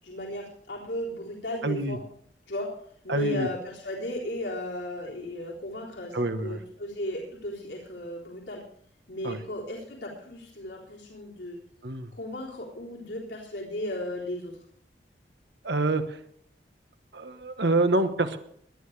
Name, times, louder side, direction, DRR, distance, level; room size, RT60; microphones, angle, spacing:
voice 1, 0.0-2.0 2.5-2.8 3.0-8.6 9.1-11.6 12.1-14.6, left 1 dB, 75° left, -4 dB, 3.8 m, -35 dB
voice 2, 1.6-2.0 3.1-3.5 6.1-6.6 9.2-9.4 11.8-12.1 15.6-16.2 17.1-18.4, right 2 dB, 75° right, 9 dB, 1.3 m, -26 dB
20.0 x 12.0 x 3.3 m, 0.65 s
head